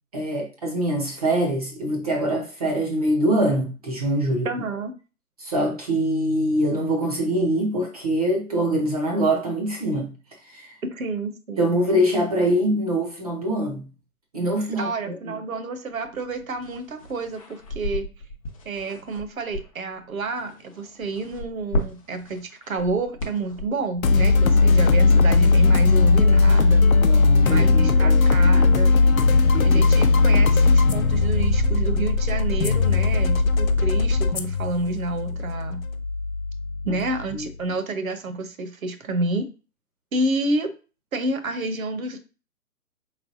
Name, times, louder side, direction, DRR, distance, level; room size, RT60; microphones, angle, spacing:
voice 1, 0.1-4.5 5.4-10.1 10.4-10.7 11.6-13.9 14.3-15.4 27.0-28.3 28.5-28.6 29.5-29.8 36.8-36.9 37.3-37.5, right 1 dB, 25° right, 2 dB, 0.6 m, -24 dB
voice 2, 4.4-4.9 10.8-11.8 14.7-18.1 18.6-26.8 27.4-28.9 29.6-35.8 36.9-39.5 40.1-40.7 41.1-42.2, right 2 dB, 65° right, 9 dB, 0.9 m, -29 dB
sound 1, 15.9-26.4, left 1 dB, 25° left, 0.6 m, -36 dB
sound 2, 24.0-37.4, left 3 dB, 65° left, 0.7 m, -18 dB
4.5 x 3.3 x 2.7 m, 0.33 s
figure-of-eight pair, 135°, 45 cm